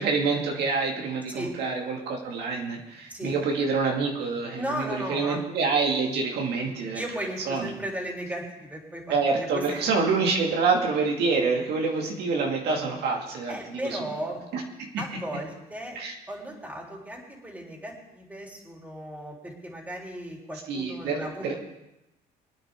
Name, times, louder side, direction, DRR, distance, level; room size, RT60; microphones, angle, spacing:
voice 1, 0.0-7.0 7.5-7.7 9.1-14.0 14.5-14.6 15.9-16.1 20.7-21.5, right 4 dB, 75° right, 0 dB, 2.4 m, -27 dB
voice 2, 4.5-5.4 6.9-9.8 13.5-14.4 15.0-16.0 16.3-21.6, equal, 10° right, -1 dB, 3.7 m, -36 dB
23.0 x 9.5 x 3.8 m, 0.94 s
cardioid pair, 110°, 17 cm